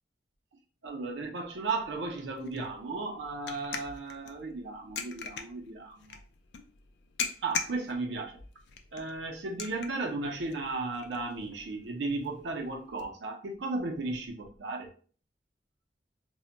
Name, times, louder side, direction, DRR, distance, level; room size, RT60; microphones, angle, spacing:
voice 1, 0.8-6.2 7.4-8.4 8.9-14.9, right 3 dB, 90° right, 1 dB, 0.5 m, -35 dB
sound 1, 1.7-13.0, left 6 dB, 80° left, 0.4 m, -42 dB
2.1 x 2.1 x 3.7 m, 0.42 s
head